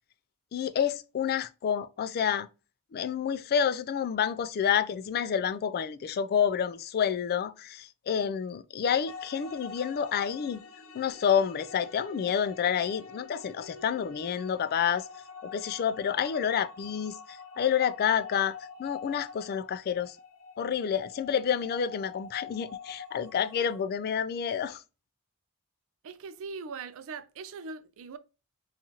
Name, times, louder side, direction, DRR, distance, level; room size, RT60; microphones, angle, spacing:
voice 1, 0.5-2.5 2.9-10.6 10.9-15.1 15.4-20.2 20.6-24.8, left 8 dB, 45° left, 0.3 m, -29 dB
sound 1, 9.1-23.8, left 5 dB, 70° left, 0.8 m, -45 dB
voice 2, 26.0-28.2, right 4 dB, 65° right, 0.4 m, -41 dB
4.3 x 2.4 x 2.8 m
head